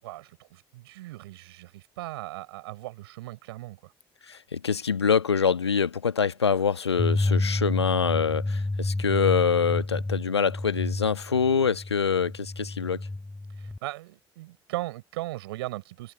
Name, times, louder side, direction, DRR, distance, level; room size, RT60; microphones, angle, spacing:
voice 1, 0.0-3.9 13.6-16.1, right 18 dB, 70° right, 5.8 m, -38 dB
voice 2, 4.3-13.1, left 6 dB, 85° left, 1.2 m, -25 dB
sound 1, 7.0-13.8, left 2 dB, 10° left, 0.7 m, -30 dB
figure-of-eight pair, 50°, 14 cm